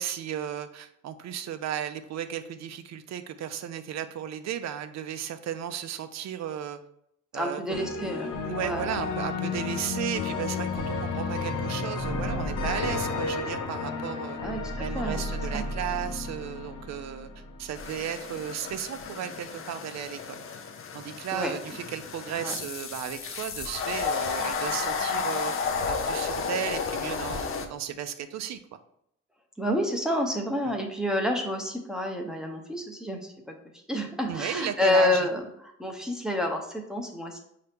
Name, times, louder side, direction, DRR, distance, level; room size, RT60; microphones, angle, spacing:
voice 1, 0.0-6.8 7.3-7.9 8.4-14.4 14.8-17.3 17.6-20.4 20.9-28.6 30.7-30.8 34.3-35.3, right 9 dB, 65° right, 10 dB, 0.5 m, -34 dB
voice 2, 7.3-8.3 8.6-8.9 14.4-15.2 15.5-15.6 21.3-21.6 22.4-22.5 29.6-33.5 33.9-37.4, left 1 dB, ahead, 1 dB, 0.8 m, -29 dB
sound 1, 7.7-17.8, left 3 dB, 85° left, 0.9 m, -32 dB
sound 2, 17.8-27.7, left 5 dB, 45° left, 0.6 m, -32 dB
5.5 x 2.8 x 3.4 m, 0.73 s
cardioid pair, 90°, 30 cm